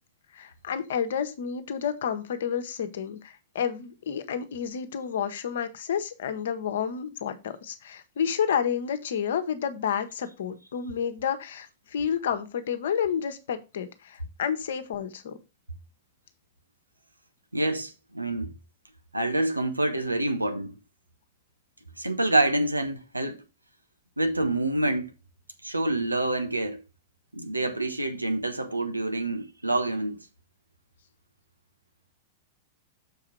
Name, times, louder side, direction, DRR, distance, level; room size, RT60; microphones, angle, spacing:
voice 1, 0.3-15.4, left 8 dB, 65° left, 1.1 m, -30 dB
voice 2, 17.5-18.5 19.1-20.7 22.0-23.4 24.2-25.1 25.6-26.8 27.3-30.2, right 2 dB, 90° right, 1.1 m, -27 dB
7.0 x 4.9 x 4.5 m
figure-of-eight pair, 95°, 0 cm